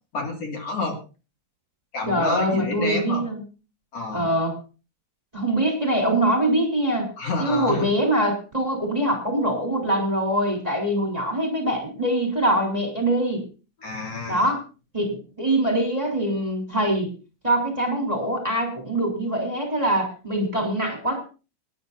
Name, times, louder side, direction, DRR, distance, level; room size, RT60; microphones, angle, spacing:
voice 1, 0.1-1.0 1.9-3.2 3.9-4.3 7.2-7.9 13.8-14.5, left 3 dB, 50° left, 1 dB, 3.0 m, -29 dB
voice 2, 2.1-3.4 4.1-4.6 5.3-7.1 7.4-13.4 14.3-14.6 14.9-17.1 17.4-21.2, right 1 dB, 10° right, 0 dB, 3.4 m, -23 dB
25.0 x 11.0 x 2.6 m, 0.34 s
omnidirectional pair, 3.8 m